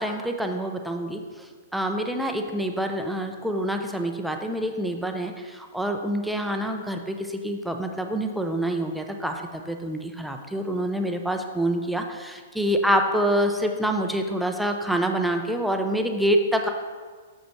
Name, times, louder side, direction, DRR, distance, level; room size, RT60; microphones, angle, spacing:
voice 1, 0.0-16.7, right 1 dB, ahead, 4 dB, 0.6 m, -26 dB
6.8 x 5.1 x 4.5 m, 1.5 s
figure-of-eight pair, 110°, 0 cm